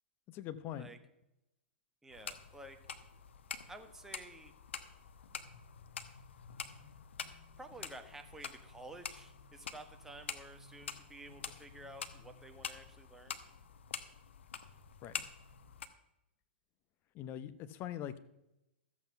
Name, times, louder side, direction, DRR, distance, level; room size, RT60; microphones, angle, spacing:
voice 1, 0.3-0.9 15.0-15.1 17.1-18.2, left 11 dB, 35° left, 13 dB, 0.8 m, -42 dB
voice 2, 2.0-2.8 3.7-4.5 7.6-13.4, right 2 dB, 5° right, 6 dB, 1.3 m, -52 dB
sound 1, 2.1-15.9, left 7 dB, 75° left, 1.0 m, -47 dB
13.5 x 7.9 x 5.8 m, 0.87 s
hypercardioid pair, 120°, 6 cm